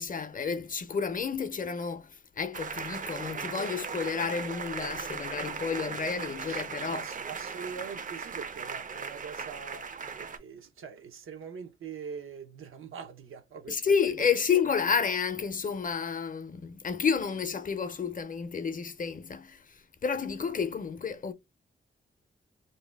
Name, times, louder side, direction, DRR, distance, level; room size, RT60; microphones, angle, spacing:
voice 1, 0.0-7.0 13.7-21.3, left 6 dB, 40° left, 0.5 m, -30 dB
sound 1, 2.5-10.4, right 5 dB, 40° right, 0.4 m, -38 dB
voice 2, 6.5-9.9 10.2-14.5 14.8-14.9, right 6 dB, 90° right, 0.6 m, -43 dB
2.7 x 2.1 x 3.3 m
cardioid pair, 70°, 20 cm